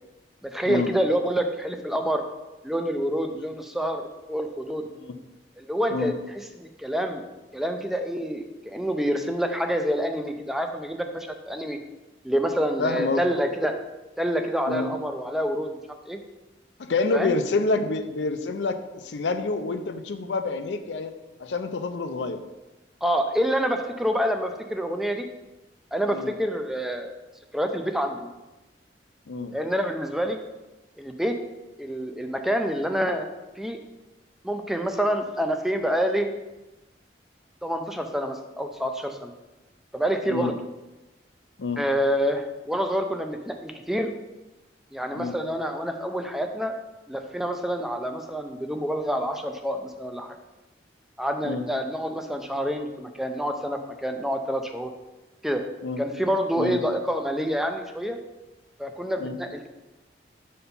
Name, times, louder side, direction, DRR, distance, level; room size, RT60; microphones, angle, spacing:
voice 1, 0.4-2.2 2.6-4.9 5.6-6.1 6.6-7.2 7.5-11.8 12.2-13.7 14.2-15.8 16.1-16.2 17.1-17.3 23.0-25.3 25.9-27.1 27.5-28.3 29.5-30.4 31.0-31.4 31.8-33.3 33.6-33.8 34.4-36.3 37.6-39.3 39.9-40.6 41.8-44.1 44.9-46.7 47.1-50.4 51.2-54.9 55.4-55.6 56.0-58.2 58.8-59.7, equal, ahead, 5 dB, 0.4 m, -27 dB
voice 2, 12.8-13.2 14.7-14.9 16.8-21.1 21.4-22.4 26.1-26.3 29.3-29.5 40.3-40.5 41.6-41.8 45.1-45.3 51.4-51.6 55.8-56.0 56.6-56.8 59.2-59.4, left 3 dB, 80° left, 8 dB, 0.5 m, -27 dB
5.5 x 4.3 x 5.3 m, 1.1 s
head